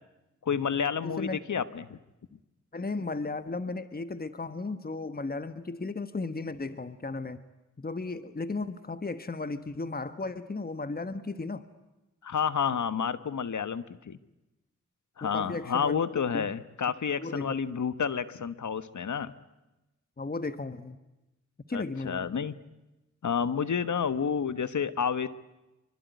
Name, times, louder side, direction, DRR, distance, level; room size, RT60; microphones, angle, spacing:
voice 1, 0.4-2.0 12.2-14.2 15.2-19.3 21.7-22.5 23.2-25.3, left 7 dB, 85° left, 14 dB, 1.4 m, -30 dB
voice 2, 1.0-1.4 2.7-7.4 7.8-11.6 15.2-16.5 17.2-17.5 20.2-21.0 21.7-22.3, left 3 dB, 30° left, 12 dB, 1.4 m, -35 dB
26.0 x 24.5 x 9.4 m, 1.0 s
wide cardioid pair, 70°, 29 cm